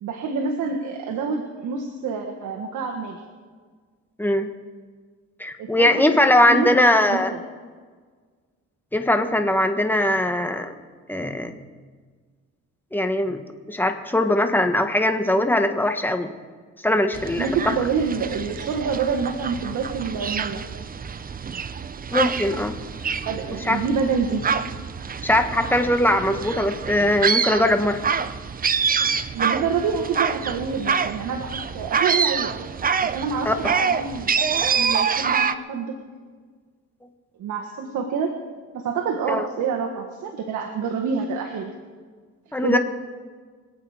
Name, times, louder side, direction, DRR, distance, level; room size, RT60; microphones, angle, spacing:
voice 1, 0.0-3.2 5.6-5.9 6.4-6.7 7.1-7.4 17.4-20.6 23.2-24.4 29.3-32.6 33.0-34.4 34.7-36.0 37.4-38.4 38.7-41.7 42.6-42.8, right 5 dB, 75° right, 2 dB, 1.5 m, -27 dB
voice 2, 5.4-7.3 8.9-10.7 11.1-11.5 12.9-13.4 13.7-16.3 16.8-17.7 22.1-22.7 23.6-23.8 25.2-28.0 33.4-33.5 39.3-39.4 42.5-42.8, left 1 dB, 5° left, 6 dB, 1.4 m, -20 dB
sound 1, 17.1-35.5, right 6 dB, 30° right, 0.6 m, -26 dB
24.5 x 8.7 x 5.0 m, 1.6 s
cardioid pair, 90°, 30 cm